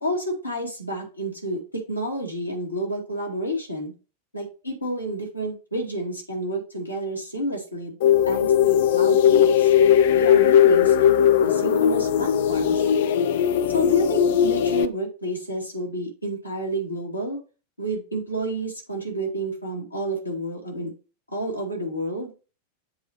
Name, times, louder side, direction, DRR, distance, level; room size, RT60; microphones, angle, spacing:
voice 1, 0.0-3.9 4.3-8.0 8.3-9.7 10.1-12.9 13.7-17.4 17.8-20.9 21.3-22.3, right 1 dB, 85° left, -1 dB, 2.2 m, -30 dB
sound 1, 8.0-14.9, left 9 dB, 55° left, 0.4 m, -18 dB
7.8 x 2.9 x 4.6 m, 0.33 s
figure-of-eight pair, 90°, 0 cm